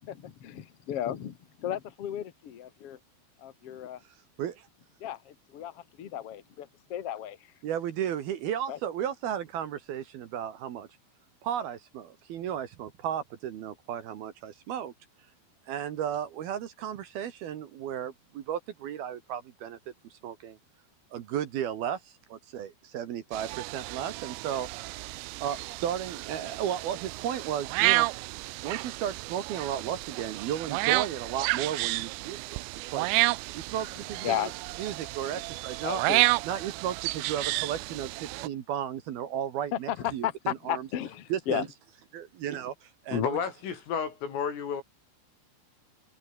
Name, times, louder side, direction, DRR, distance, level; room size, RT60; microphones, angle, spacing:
voice 1, 0.0-3.0 3.4-4.0 5.0-7.4 8.7-8.8 34.2-34.5 35.8-36.2 39.7-41.7, left 11 dB, 70° left, 1.3 m, -34 dB
voice 2, 7.6-10.9 11.4-14.9 15.7-19.8 20.1-20.6 21.1-24.7 25.4-28.1 28.6-32.6 32.9-33.1 33.5-34.5 34.8-36.0 36.4-40.9 41.3-41.7 42.1-43.3, right 9 dB, 60° right, 2.9 m, -34 dB
sound 1, 23.3-38.5, right 23 dB, 85° right, 2.5 m, -31 dB
voice 3, 43.1-44.8, left 7 dB, 90° left, 7.7 m, -31 dB
omnidirectional pair, 5.7 m